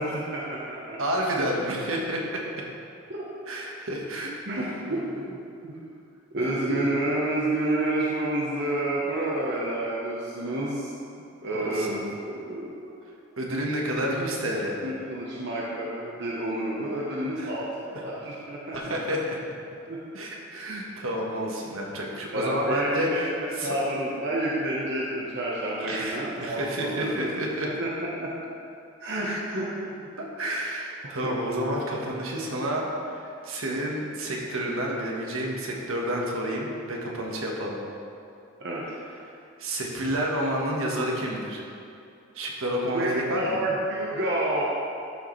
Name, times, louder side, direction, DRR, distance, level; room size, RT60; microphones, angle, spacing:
voice 1, 0.0-1.0 3.2-3.3 4.5-5.0 5.2-5.4 5.6-5.8 6.3-10.9 11.4-12.8 14.8-18.9 19.9-20.0 22.3-27.3 27.6-28.3 29.0-30.0 31.2-31.3 38.6-38.8 42.9-44.6, right 1 dB, 50° right, -5 dB, 1.0 m, -29 dB
voice 2, 1.0-2.4 3.5-4.8 5.2-5.3 6.4-6.9 11.5-12.0 13.4-14.8 17.4-17.5 17.9-18.1 18.7-19.4 20.1-23.3 23.6-23.7 25.8-27.7 29.2-29.6 30.2-37.8 39.6-41.6 42.3-43.6, equal, 75° right, -2 dB, 1.4 m, -30 dB
12.5 x 6.5 x 3.2 m, 2.6 s
head